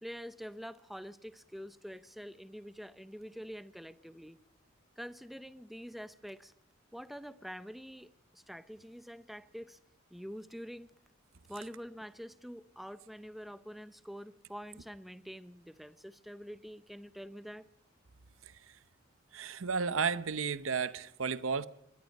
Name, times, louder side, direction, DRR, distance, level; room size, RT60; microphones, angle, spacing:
voice 1, 0.0-4.4 5.0-6.5 6.9-9.8 10.1-10.9 11.5-17.7, equal, ahead, 0.7 m, -46 dB
voice 2, 19.3-21.7, right 5 dB, 80° right, 0.8 m, -33 dB
23.5 x 21.5 x 5.4 m
head